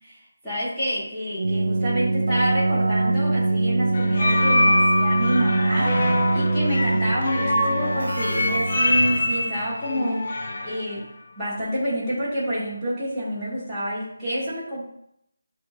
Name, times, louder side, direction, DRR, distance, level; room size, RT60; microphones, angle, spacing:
voice 1, 0.0-10.3 10.6-11.1 11.4-14.8, equal, ahead, -16 dB, 0.9 m, -28 dB
Keyboard (musical), 1.4-9.5, right 2 dB, 80° right, 0.3 m, -23 dB
sound 1, 3.9-10.9, left 2 dB, 40° left, 0.5 m, -24 dB
7.6 x 2.8 x 2.3 m, 0.74 s
figure-of-eight pair, 175°, 0 cm